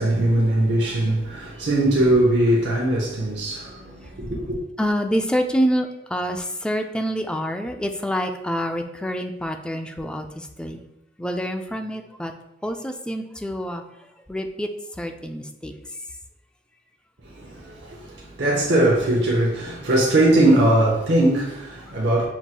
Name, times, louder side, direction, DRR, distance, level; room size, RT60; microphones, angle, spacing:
voice 1, 0.0-4.6 17.2-22.3, right 1 dB, 85° right, 0.9 m, -20 dB
voice 2, 4.8-10.8 11.2-12.3 12.6-16.0 21.9-22.0, equal, 5° left, 0.3 m, -27 dB
7.0 x 3.1 x 2.2 m
head